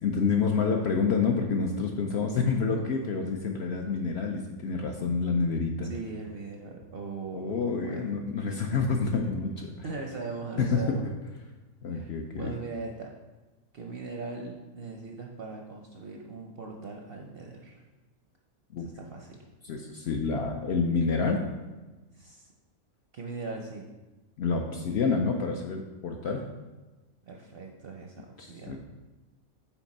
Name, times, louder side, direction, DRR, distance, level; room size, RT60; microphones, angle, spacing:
voice 1, 0.0-5.9 7.3-9.7 10.6-10.8 11.8-12.5 18.7-18.9 19.6-21.4 24.4-26.4 28.4-28.8, left 5 dB, 65° left, 2 dB, 0.7 m, -28 dB
voice 2, 5.9-8.1 9.8-11.0 11.9-13.1 13.7-17.8 19.0-19.4 22.1-22.5 23.1-23.9 27.3-28.8, right 3 dB, 60° right, 1 dB, 0.6 m, -40 dB
5.8 x 4.4 x 4.1 m, 1.2 s
omnidirectional pair, 1.5 m